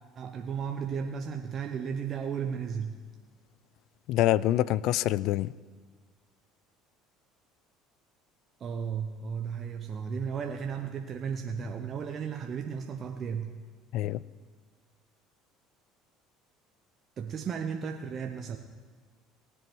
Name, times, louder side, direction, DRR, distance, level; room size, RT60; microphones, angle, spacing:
voice 1, 0.2-3.0 8.6-13.5 17.2-18.6, right 6 dB, 45° right, 4 dB, 0.8 m, -34 dB
voice 2, 4.1-5.5 13.9-14.2, left 14 dB, 65° left, 21 dB, 0.3 m, -26 dB
18.5 x 7.9 x 4.6 m, 1.5 s
hypercardioid pair, 70°, 0 cm